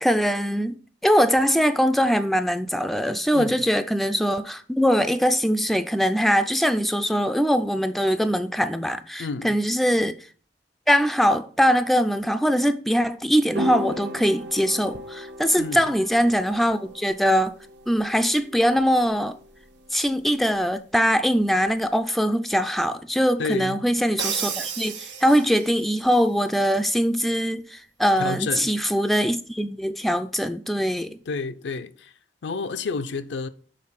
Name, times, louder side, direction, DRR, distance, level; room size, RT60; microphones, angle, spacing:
voice 1, 0.0-0.7 1.0-10.3 10.9-17.5 17.9-19.4 19.9-31.2, equal, ahead, 0.3 m, -22 dB
voice 2, 9.2-9.6 15.6-15.8 23.4-23.8 28.2-28.8 31.3-32.1 32.4-33.5, left 4 dB, 75° left, 0.5 m, -30 dB
sound 1, 13.6-22.0, equal, 65° right, 0.7 m, -37 dB
Crash cymbal, 24.2-25.9, right 7 dB, 85° right, 1.3 m, -31 dB
6.6 x 3.7 x 5.7 m
head